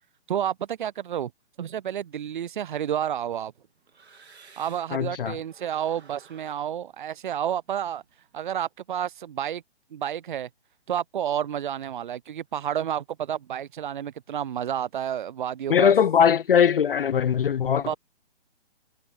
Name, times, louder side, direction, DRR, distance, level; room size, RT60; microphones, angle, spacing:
voice 1, 0.3-1.3 1.6-3.5 4.6-8.0 8.3-9.6 9.9-10.5 10.9-15.9 17.9-18.0, right 10 dB, 50° right, 0.5 m, -30 dB
sound 1, 2.4-5.1 5.4-8.4, right 5 dB, 75° right, 3.2 m, -56 dB
voice 2, 4.9-5.4 15.7-17.9, left 8 dB, 55° left, 0.6 m, -20 dB
figure-of-eight pair, 140°, 33 cm